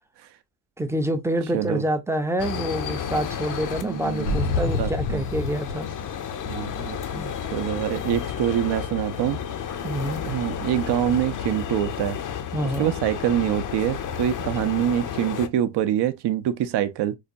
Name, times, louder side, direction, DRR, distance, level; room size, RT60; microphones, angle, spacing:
voice 1, 0.8-5.9 7.1-7.3 9.8-10.2 12.5-12.9 14.6-14.7, right 1 dB, 5° right, 0.4 m, -27 dB
voice 2, 1.5-1.8 3.8-4.3 4.8-5.2 6.4-7.0 7.5-9.4 9.7-9.8 10.2-12.2 12.8-17.2, right 11 dB, 70° right, 0.6 m, -25 dB
sound 1, 2.4-15.5, left 8 dB, 45° left, 0.5 m, -32 dB
sound 2, 4.3-7.0, left 3 dB, 85° left, 1.0 m, -28 dB
4.7 x 2.2 x 2.5 m
cardioid pair, 130°, 43 cm